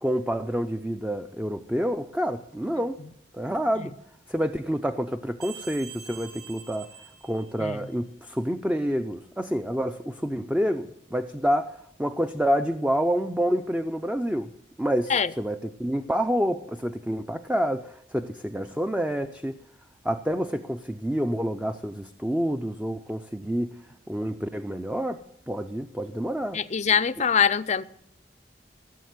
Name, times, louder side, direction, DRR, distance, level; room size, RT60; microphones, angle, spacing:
voice 1, 0.0-3.0 3.3-3.9 4.3-6.9 7.2-14.5 14.8-19.6 20.0-23.8 24.1-25.2 25.5-26.6, equal, 5° right, 0.6 m, -28 dB
sound 1, 5.4-8.0, right 8 dB, 65° right, 4.3 m, -45 dB
voice 2, 26.5-27.8, left 7 dB, 40° left, 0.6 m, -23 dB
17.0 x 7.4 x 9.5 m
head